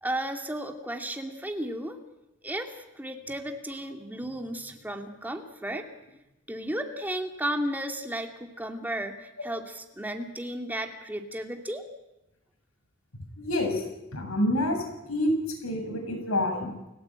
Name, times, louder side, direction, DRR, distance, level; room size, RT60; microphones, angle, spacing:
voice 1, 0.0-2.0 2.4-5.9 6.5-11.8, right 1 dB, 10° right, 4 dB, 2.5 m, -34 dB
voice 2, 13.4-13.8 14.1-14.8 15.1-15.3 15.6-16.7, left 1 dB, 85° left, 4 dB, 7.3 m, -27 dB
29.0 x 17.0 x 8.9 m, 0.93 s
head